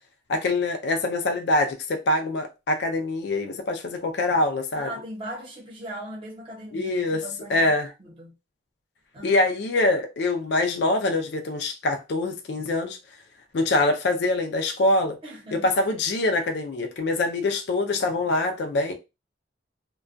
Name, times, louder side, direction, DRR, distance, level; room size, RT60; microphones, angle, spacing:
voice 1, 0.3-4.9 6.7-7.2 7.5-7.9 9.2-13.0 13.5-15.2 15.5-18.9, left 2 dB, 60° left, 0.4 m, -24 dB
voice 2, 4.7-7.7 8.0-8.3 9.1-9.5 15.2-15.7, right 1 dB, 30° right, 0.8 m, -39 dB
2.2 x 2.2 x 2.5 m
head